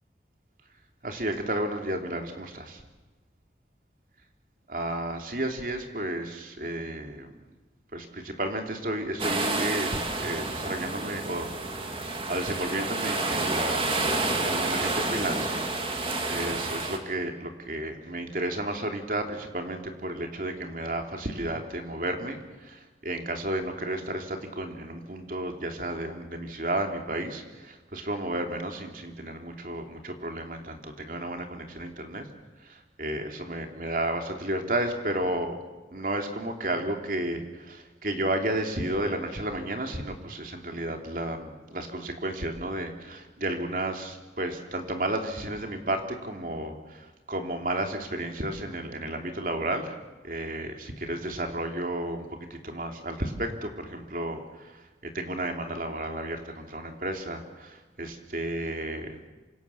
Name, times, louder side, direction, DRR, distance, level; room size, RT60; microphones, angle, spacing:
voice 1, 1.0-2.8 4.7-7.3 7.9-32.3 32.6-35.6 35.9-50.0 50.2-54.7 55.1-59.3, right 1 dB, 50° right, 4 dB, 3.1 m, -32 dB
sound 1, 9.2-17.0, right 2 dB, 30° right, 2.5 m, -29 dB
27.5 x 26.0 x 7.2 m, 1.2 s
head